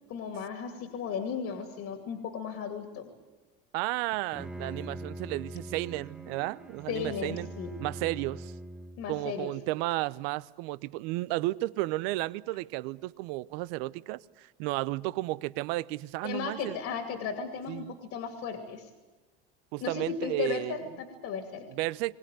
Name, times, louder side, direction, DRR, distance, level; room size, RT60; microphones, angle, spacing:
voice 1, 0.1-3.1 6.9-7.7 9.0-9.5 16.2-18.9 19.8-21.7, left 6 dB, 55° left, 2.7 m, -35 dB
voice 2, 3.7-7.5 7.8-8.5 9.1-16.8 17.7-18.0 19.7-20.8 21.7-22.1, right 19 dB, 75° right, 0.7 m, -33 dB
Bowed string instrument, 4.1-9.2, right 1 dB, 5° right, 0.9 m, -43 dB
22.0 x 17.5 x 9.2 m
supercardioid pair, 120°, 30 cm